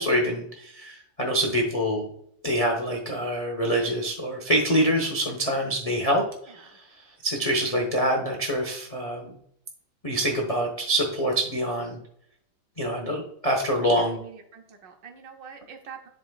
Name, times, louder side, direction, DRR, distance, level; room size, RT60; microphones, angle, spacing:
voice 1, 0.0-2.1 2.4-6.8 7.2-9.4 10.0-12.0 12.8-14.2, equal, 40° left, 1 dB, 0.5 m, -25 dB
voice 2, 14.1-16.1, right 6 dB, 65° right, 3 dB, 1.3 m, -45 dB
11.0 x 4.1 x 2.3 m, 0.69 s
omnidirectional pair, 2.4 m